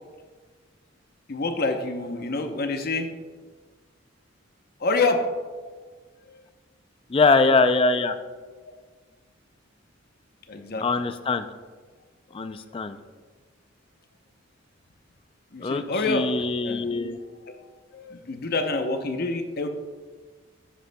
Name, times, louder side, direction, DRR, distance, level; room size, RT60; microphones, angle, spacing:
voice 1, 1.3-3.1 4.8-5.3 6.3-6.4 8.7-8.8 10.5-10.9 12.5-12.6 15.5-17.1 17.4-19.7, left 3 dB, 50° left, 6 dB, 0.7 m, -27 dB
voice 2, 7.1-8.1 10.8-11.5 12.3-13.0 15.6-17.2, left 3 dB, 25° left, 10 dB, 0.4 m, -22 dB
11.5 x 8.0 x 2.2 m, 1.4 s
head